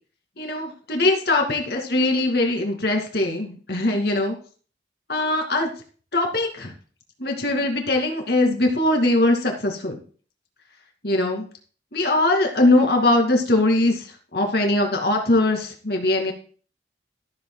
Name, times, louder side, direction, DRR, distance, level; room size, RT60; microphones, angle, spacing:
voice 1, 0.4-4.4 5.1-5.7 6.1-6.7 7.2-10.0 11.0-11.4 11.9-14.0 14.3-16.3, left 2 dB, 60° left, 2 dB, 2.5 m, -21 dB
14.5 x 7.5 x 2.3 m, 0.40 s
head